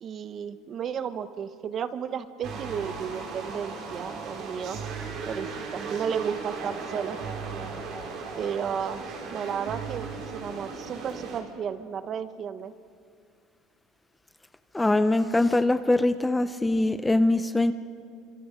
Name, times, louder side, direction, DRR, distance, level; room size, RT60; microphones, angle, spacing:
voice 1, 0.0-4.8 5.3-7.2 8.4-9.0 9.3-10.1 10.3-12.7, right 7 dB, 35° right, 12 dB, 0.9 m, -33 dB
sound 1, 2.4-11.4, right 4 dB, 55° right, 4.4 m, -37 dB
voice 2, 14.7-17.7, left 2 dB, 5° left, 11 dB, 0.5 m, -23 dB
29.5 x 26.0 x 5.1 m, 2.4 s
cardioid pair, 150°, 0 cm